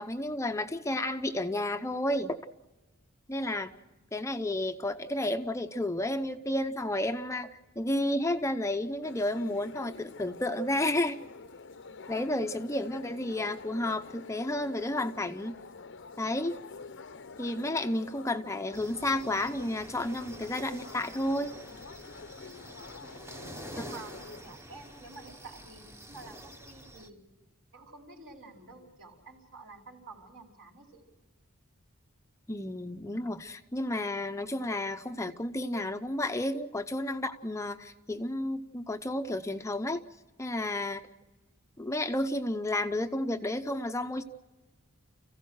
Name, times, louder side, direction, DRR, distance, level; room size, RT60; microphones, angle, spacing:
voice 1, 0.0-2.4 3.3-3.7 4.1-7.5 7.8-11.2 12.1-15.6 16.2-16.6 17.4-21.5 32.5-40.0 40.4-41.1 41.8-44.2, left 1 dB, 15° left, 7 dB, 0.7 m, -31 dB
sound 1, 9.0-24.4, left 4 dB, 60° left, 0.8 m, -47 dB
sound 2, 18.7-27.1, right 1 dB, 10° right, 1.1 m, -48 dB
voice 2, 23.3-27.2 27.7-31.0, right 3 dB, 65° right, 0 dB, 4.8 m, -50 dB
30.0 x 16.0 x 6.4 m, 1.1 s
head